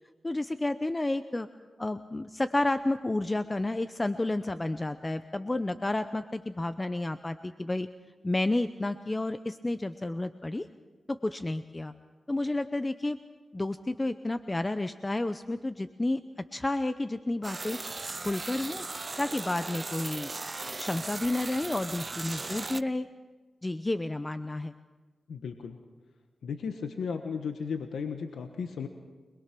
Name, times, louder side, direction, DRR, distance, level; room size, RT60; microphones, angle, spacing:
voice 1, 0.2-1.5 1.8-7.9 8.2-10.7 11.1-11.9 12.3-13.2 13.5-16.2 16.5-17.8 18.2-18.8 19.2-20.3 20.8-23.1 23.6-24.7, left 2 dB, 25° left, 11 dB, 0.7 m, -31 dB
sound 1, 17.4-22.8, right 3 dB, 35° right, 0.6 m, -38 dB
voice 2, 25.3-25.8 26.4-28.9, left 6 dB, 90° left, 6 dB, 1.3 m, -35 dB
25.0 x 21.5 x 6.1 m, 1.3 s
cardioid pair, 65°, 0 cm